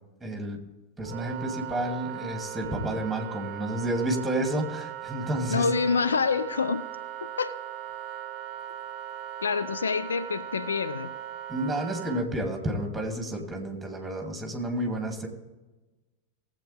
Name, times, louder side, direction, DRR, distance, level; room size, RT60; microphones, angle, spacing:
voice 1, 0.2-0.6 1.0-5.7 11.5-15.3, right 1 dB, 5° right, 2.5 m, -30 dB
Wind instrument woodwind instrument, 1.0-12.2, right 11 dB, 45° right, 0.6 m, -39 dB
voice 2, 5.5-6.9 7.2-7.6 9.4-11.2, left 5 dB, 70° left, 0.4 m, -27 dB
18.0 x 8.2 x 3.5 m
figure-of-eight pair, 90°, 0 cm